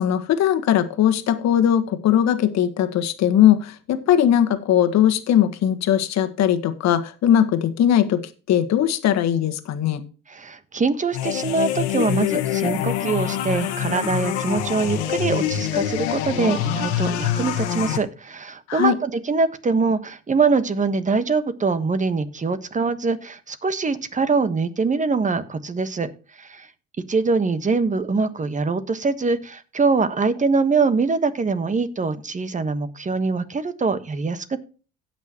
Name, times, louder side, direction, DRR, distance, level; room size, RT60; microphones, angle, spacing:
voice 1, 0.0-8.2 8.5-10.0 18.7-19.0, left 10 dB, 55° left, 8 dB, 1.6 m, -19 dB
voice 2, 10.3-26.1 26.4-26.7 27.1-34.6, right 4 dB, 25° right, 13 dB, 1.3 m, -23 dB
sound 1, 11.1-18.0, left 10 dB, 90° left, 1.7 m, -25 dB
17.5 x 6.2 x 3.0 m, 0.35 s
supercardioid pair, 85°, 32 cm